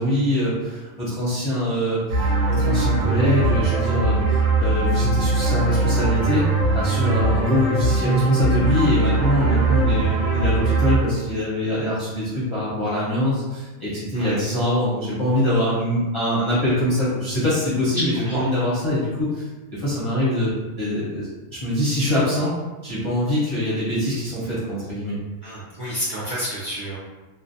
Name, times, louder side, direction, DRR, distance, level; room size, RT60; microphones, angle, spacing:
voice 1, 0.0-6.5 6.7-19.5 19.7-20.5 20.8-21.3 21.6-22.5 22.8-25.2, left 1 dB, 30° left, -11 dB, 0.6 m, -23 dB
sound 1, 2.1-11.0, right 3 dB, 70° right, 1.0 m, -21 dB
voice 2, 17.9-18.4 25.4-27.0, equal, 55° right, -10 dB, 0.6 m, -29 dB
2.5 x 2.0 x 2.6 m, 1.2 s
omnidirectional pair, 1.4 m